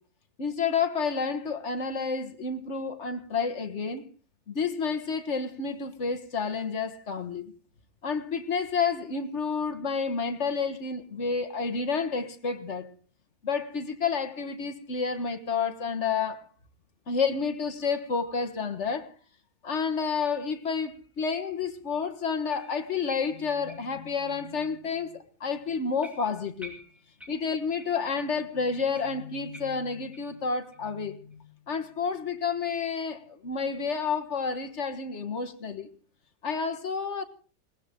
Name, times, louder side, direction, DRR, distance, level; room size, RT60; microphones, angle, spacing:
voice 1, 0.4-4.0 4.5-7.5 8.0-12.9 13.4-16.4 17.1-19.1 19.6-25.1 25.4-26.7 27.3-33.2 33.4-35.9 36.4-37.2, left 5 dB, 50° left, 1.7 m, -30 dB
sound 1, 22.5-24.5 24.9-25.0 25.5-25.6 26.0-28.1 28.4-28.5 28.9-30.4 30.7-30.8 31.3-31.4 31.9-32.0, right 1 dB, ahead, 3.9 m, -50 dB
21.0 x 18.5 x 3.7 m
omnidirectional pair, 1.6 m